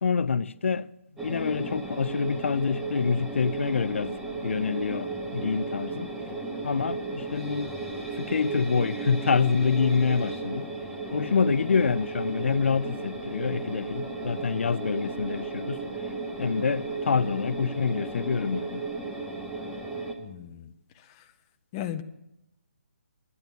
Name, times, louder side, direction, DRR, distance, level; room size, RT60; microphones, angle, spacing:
voice 1, 0.0-0.9 1.2-4.1 4.4-6.1 6.6-7.7 8.2-10.7 11.1-15.8 16.4-18.8, left 5 dB, 75° left, 0.5 m, -26 dB
sound 1, 1.2-20.1, right 3 dB, 5° right, 1.1 m, -35 dB
voice 2, 20.2-20.7 21.1-21.3 21.7-22.0, left 11 dB, 20° left, 0.6 m, -36 dB
11.0 x 10.5 x 8.2 m
hypercardioid pair, 165°, 7 cm